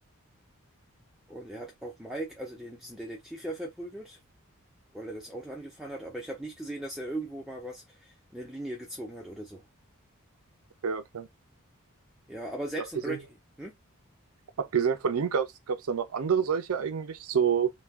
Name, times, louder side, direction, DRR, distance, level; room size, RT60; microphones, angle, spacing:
voice 1, 1.3-4.2 4.9-9.6 12.3-13.2 13.6-13.7, right 1 dB, ahead, 0.4 m, -38 dB
voice 2, 10.8-11.3 13.1-13.2 14.6-17.7, right 7 dB, 70° right, 0.5 m, -28 dB
2.3 x 2.2 x 3.4 m
head